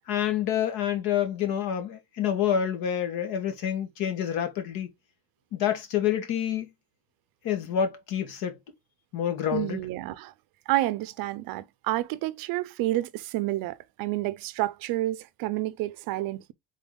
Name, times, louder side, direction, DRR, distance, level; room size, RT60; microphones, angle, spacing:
voice 1, 0.1-4.9 5.5-6.7 7.4-8.6 9.1-9.8, left 9 dB, 60° left, 1.4 m, -28 dB
voice 2, 9.5-10.3 10.7-16.5, right 16 dB, 55° right, 0.5 m, -29 dB
3.9 x 3.5 x 3.6 m
cardioid pair, 140°, 41 cm